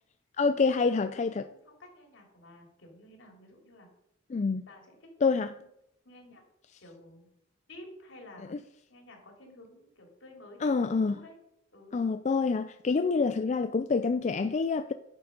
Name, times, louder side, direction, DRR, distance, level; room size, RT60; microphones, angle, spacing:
voice 1, 0.4-1.4 4.3-4.6 5.2-5.5 8.5-8.6 10.6-11.1 11.9-14.9, left 4 dB, 35° left, 0.3 m, -27 dB
voice 2, 0.9-3.9 4.7-5.7 6.0-6.4 6.8-7.3 7.7-8.6 8.9-11.3 11.7-11.9, left 1 dB, 65° left, 3.0 m, -52 dB
10.5 x 6.9 x 5.2 m
head